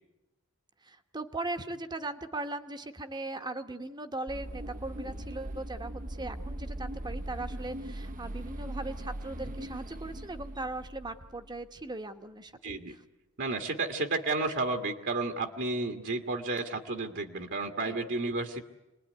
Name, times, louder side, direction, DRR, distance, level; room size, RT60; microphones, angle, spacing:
voice 1, 0.8-12.5 12.9-13.0 17.8-17.9, right 2 dB, 20° right, 8 dB, 1.2 m, -39 dB
sound 1, 4.3-11.7, right 1 dB, 35° right, 0.9 m, -40 dB
voice 2, 12.6-13.0 13.4-18.6, right 3 dB, 55° right, 5 dB, 1.7 m, -32 dB
26.5 x 20.5 x 9.6 m, 1.0 s
head